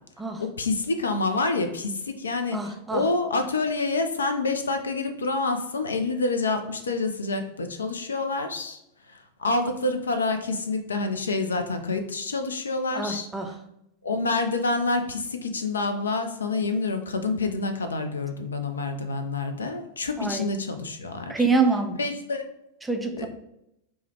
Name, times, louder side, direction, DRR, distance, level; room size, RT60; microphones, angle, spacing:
voice 1, 0.4-8.8 9.1-13.3 14.0-21.4 22.0-22.5 23.1-23.3, left 3 dB, 70° left, 7 dB, 0.4 m, -27 dB
voice 2, 2.5-3.1 12.9-13.6 20.2-20.5 21.3-22.0 22.8-23.3, right 4 dB, 10° right, 4 dB, 0.4 m, -26 dB
4.5 x 2.1 x 3.1 m, 0.82 s
figure-of-eight pair, 90°, 0 cm